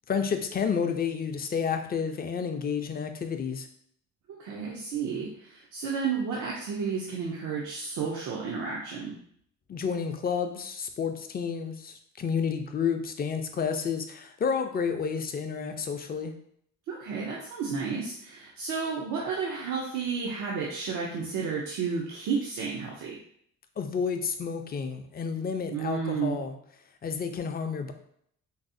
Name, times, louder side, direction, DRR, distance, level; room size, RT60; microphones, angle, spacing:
voice 1, 0.1-3.7 9.7-16.3 23.8-26.5 27.0-27.9, left 6 dB, 30° left, 7 dB, 0.4 m, -30 dB
voice 2, 4.3-9.2 16.9-23.2 25.7-26.4, right 5 dB, 85° right, -4 dB, 0.6 m, -32 dB
3.9 x 2.0 x 2.6 m, 0.66 s
cardioid pair, 90°, 30 cm